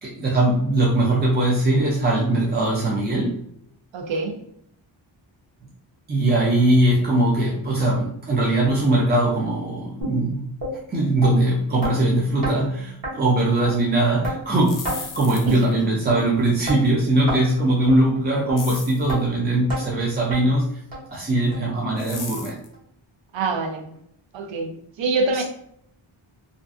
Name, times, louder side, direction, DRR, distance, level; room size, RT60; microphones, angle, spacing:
voice 1, 0.0-3.4 6.1-10.5 10.9-20.7 21.1-22.6 25.3-25.4, right 1 dB, 25° right, -5 dB, 0.3 m, -21 dB
voice 2, 3.9-4.4 15.5-15.7 23.3-23.9 24.3-25.4, right 3 dB, 70° right, 4 dB, 0.6 m, -25 dB
sound 1, 10.0-10.1 10.6-10.7 11.2-11.3 11.8-11.9 12.4-12.6 13.0-13.1 13.6-13.7 14.2-14.4 14.8-15.0 15.5-15.6 16.1-16.2 16.7-16.8 17.3-17.4 17.9-18.0 18.5-18.6 19.1-19.2 19.7-19.8 20.3-20.4 20.9-21.0 21.5-21.6 22.1-22.2 22.7-22.8, right 1 dB, 45° right, 0.8 m, -28 dB
sound 2, 14.5-15.8 18.6-19.1 22.0-22.7, left 5 dB, 45° left, 0.4 m, -36 dB
2.5 x 2.3 x 2.4 m, 0.72 s
wide cardioid pair, 140°, 48 cm